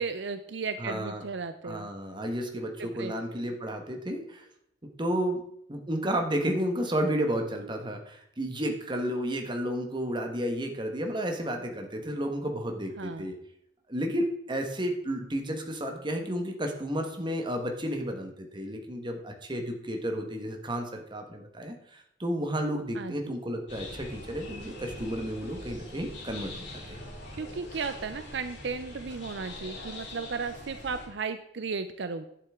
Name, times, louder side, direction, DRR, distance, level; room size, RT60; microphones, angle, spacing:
voice 1, 0.0-1.9 3.0-3.1 13.0-13.3 22.9-23.2 27.4-32.2, right 4 dB, 65° right, 10 dB, 0.5 m, -35 dB
voice 2, 0.8-1.2 1.6-4.5 5.0-5.4 5.7-13.4 13.9-27.1, equal, 25° right, 3 dB, 1.4 m, -32 dB
sound 1, 23.7-31.1, left 1 dB, 70° left, 3.6 m, -43 dB
11.0 x 7.7 x 3.7 m, 0.76 s
head